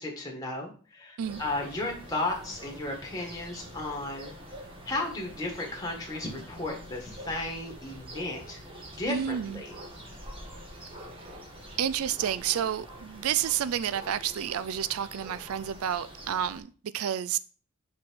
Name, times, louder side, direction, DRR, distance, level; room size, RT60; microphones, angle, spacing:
voice 1, 0.0-4.3 4.8-9.7, left 2 dB, 15° left, 1.7 m, -34 dB
sound 1, 1.2-16.6, equal, 25° right, 1.4 m, -46 dB
voice 2, 9.1-9.6 11.2-11.4 11.8-17.4, right 9 dB, 80° right, 0.4 m, -30 dB
5.5 x 4.9 x 4.6 m
head